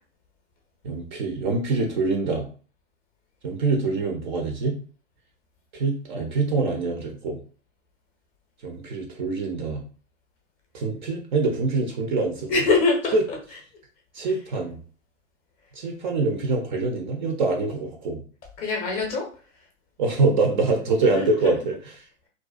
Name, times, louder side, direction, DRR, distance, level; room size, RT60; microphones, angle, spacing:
voice 1, 0.8-2.5 3.4-4.8 5.7-7.4 8.6-9.8 10.7-12.5 13.1-13.2 14.1-14.8 15.7-18.2 20.0-21.7, right 3 dB, 40° right, 3 dB, 0.4 m, -24 dB
voice 2, 12.5-13.4 14.2-14.3 18.6-19.3 21.1-21.5, left 3 dB, 25° left, 0 dB, 0.6 m, -24 dB
2.5 x 2.1 x 2.3 m, 0.40 s
figure-of-eight pair, 105°, 39 cm